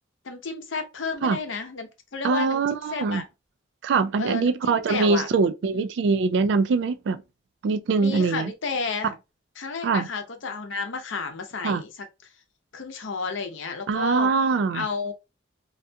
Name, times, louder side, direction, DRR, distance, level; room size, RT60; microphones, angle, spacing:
voice 1, 0.2-3.2 4.2-5.3 5.7-5.9 8.0-9.1 9.6-12.0 12.7-14.3 14.7-15.1, left 4 dB, 80° left, 0.6 m, -31 dB
voice 2, 2.2-3.2 3.8-7.2 7.6-8.5 9.8-10.1 11.6-11.8 13.9-14.9, right 4 dB, 65° right, 0.3 m, -23 dB
2.4 x 2.2 x 2.6 m
head